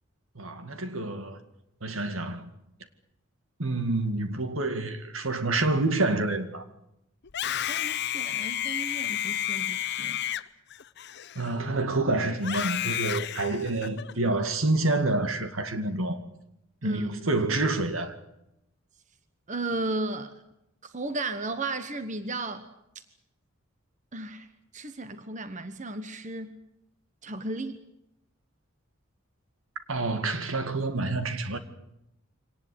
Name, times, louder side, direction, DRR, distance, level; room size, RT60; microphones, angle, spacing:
voice 1, 0.4-1.4 1.8-2.5 3.6-6.6 11.4-16.2 16.8-18.2 29.9-31.6, right 2 dB, 75° right, 2.2 m, -28 dB
Screaming, 7.2-11.8 12.4-14.1, left 11 dB, 55° left, 0.8 m, -31 dB
voice 2, 7.6-10.2 16.8-17.3 19.5-20.3 20.8-22.7 24.1-24.5 24.7-26.6 27.2-27.8, right 2 dB, 35° right, 1.2 m, -34 dB
25.0 x 19.0 x 8.5 m
head